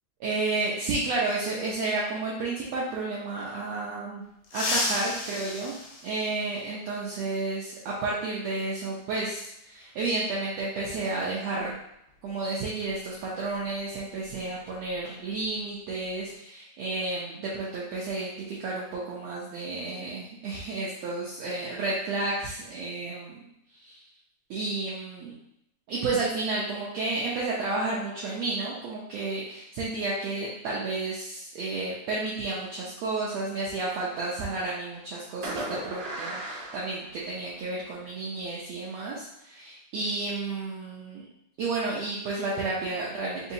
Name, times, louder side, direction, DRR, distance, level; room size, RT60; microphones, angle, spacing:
voice 1, 0.2-4.2 4.5-5.7 6.0-11.8 12.2-23.4 23.7-24.0 24.5-25.3 25.9-41.3 41.6-43.5, right 3 dB, 80° right, -6 dB, 1.5 m, -31 dB
sound 1, 4.4-6.9 8.5-8.6 9.8-9.9 11.6-11.7 12.1-12.3 12.8-15.0 15.2-15.5 15.9-16.3, left 2 dB, 70° left, 1.7 m, -34 dB
Fireworks, 33.8-34.8 35.4-37.7, right 1 dB, 65° right, 1.8 m, -38 dB
5.1 x 2.8 x 2.7 m, 0.80 s
omnidirectional pair, 3.9 m